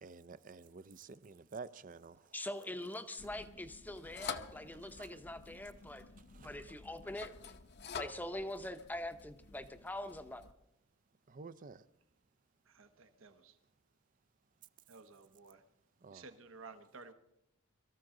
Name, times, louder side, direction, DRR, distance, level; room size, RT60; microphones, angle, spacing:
voice 1, 0.0-2.2 5.0-5.1 6.3-6.5 11.3-11.8 16.0-16.3, right 4 dB, 40° right, 0.5 m, -50 dB
voice 2, 2.3-6.0 6.4-7.5 7.9-10.4, left 1 dB, 10° left, 0.7 m, -43 dB
sound 1, 3.2-10.5, left 6 dB, 55° left, 0.8 m, -49 dB
voice 3, 12.7-13.6 14.9-15.6 16.1-17.1, right 4 dB, 70° right, 1.0 m, -54 dB
23.5 x 14.0 x 3.8 m
head